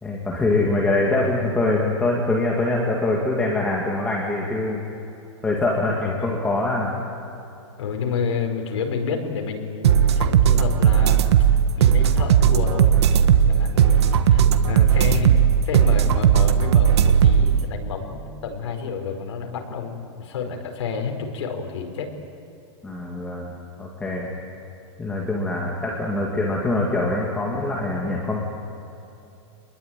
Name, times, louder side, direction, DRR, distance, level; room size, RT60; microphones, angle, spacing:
voice 1, 0.0-4.8 5.4-7.0 22.8-23.5 23.8-24.3 25.0-28.5, left 2 dB, 5° left, -3 dB, 2.3 m, -24 dB
voice 2, 6.0-6.4 7.8-11.2 11.5-22.1, left 5 dB, 75° left, 3 dB, 5.1 m, -30 dB
sound 1, 9.8-17.6, right 8 dB, 65° right, 1.5 m, -17 dB
28.0 x 21.5 x 9.2 m, 2.9 s
supercardioid pair, 175°, 15 cm